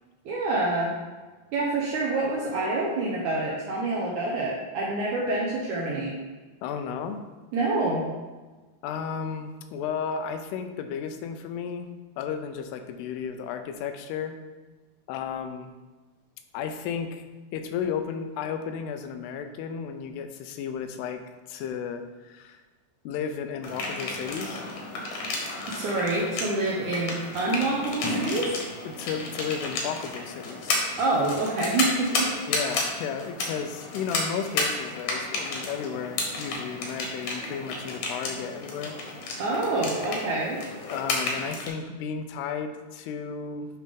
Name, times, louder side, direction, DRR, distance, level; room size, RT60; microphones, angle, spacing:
voice 1, 0.3-0.9 1.5-6.2 7.5-8.1 25.7-28.6 31.0-32.3 39.4-40.6, right 2 dB, 75° right, -4 dB, 1.8 m, -27 dB
voice 2, 6.6-7.2 8.8-11.9 12.2-14.4 15.1-15.7 16.5-17.2 17.5-21.2 21.5-22.6 23.0-24.6 28.9-30.8 32.5-39.0 40.9-43.7, left 7 dB, 85° left, 7 dB, 2.7 m, -33 dB
sound 1, 23.6-41.7, left 2 dB, 65° left, 2.2 m, -32 dB
9.1 x 3.3 x 5.2 m, 1.3 s
omnidirectional pair, 4.6 m